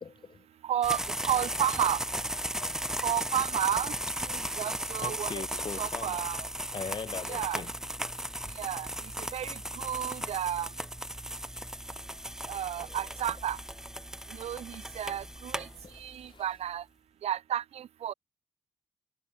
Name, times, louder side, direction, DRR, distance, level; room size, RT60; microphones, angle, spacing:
voice 1, 0.0-0.5 2.5-2.9 5.0-6.2 6.7-7.7 15.6-16.5, left 5 dB, 45° left, 2.0 m, -41 dB
voice 2, 0.6-2.0 3.0-3.9 4.3-5.4 5.8-6.5 7.3-7.6 8.6-8.9 9.3-10.7 12.5-13.6 14.3-15.7 15.9-16.8 17.2-18.1, right 10 dB, 70° right, 0.8 m, -32 dB
sound 1, 0.8-16.3, equal, 5° right, 2.7 m, -36 dB
cardioid pair, 65°, 11 cm